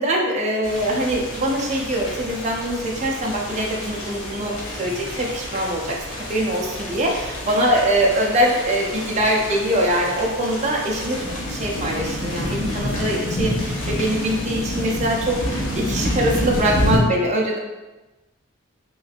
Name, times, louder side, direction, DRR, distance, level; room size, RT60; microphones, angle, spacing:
voice 1, 0.0-11.2 11.5-17.6, right 1 dB, 35° right, -1 dB, 0.5 m, -23 dB
sound 1, 0.6-17.0, left 1 dB, 80° left, 0.8 m, -28 dB
3.2 x 3.0 x 2.4 m, 1.1 s
head